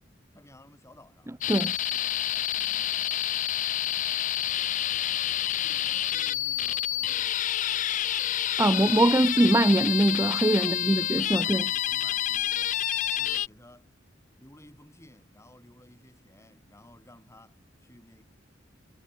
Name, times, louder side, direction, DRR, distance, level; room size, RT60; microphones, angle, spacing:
voice 1, 0.3-3.3 3.9-4.4 5.6-7.4 10.6-12.8 13.2-13.9 14.4-18.2, left 1 dB, 15° left, 6.5 m, -55 dB
sound 1, 1.4-13.5, left 12 dB, 40° left, 0.3 m, -28 dB
voice 2, 8.6-11.6, right 1 dB, 15° right, 0.6 m, -22 dB
head